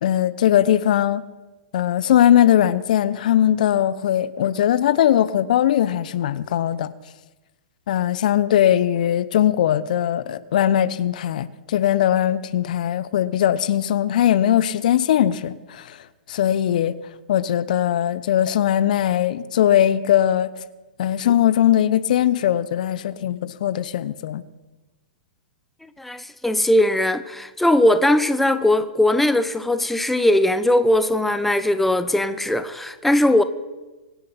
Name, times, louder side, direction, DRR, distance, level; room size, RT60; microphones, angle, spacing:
voice 1, 0.0-1.2 1.7-6.9 7.9-16.9 17.3-20.5 21.0-24.4, left 11 dB, 55° left, 0.8 m, -20 dB
voice 2, 26.0-33.4, left 1 dB, 5° left, 0.8 m, -19 dB
24.5 x 9.7 x 5.8 m
figure-of-eight pair, 110°, 5 cm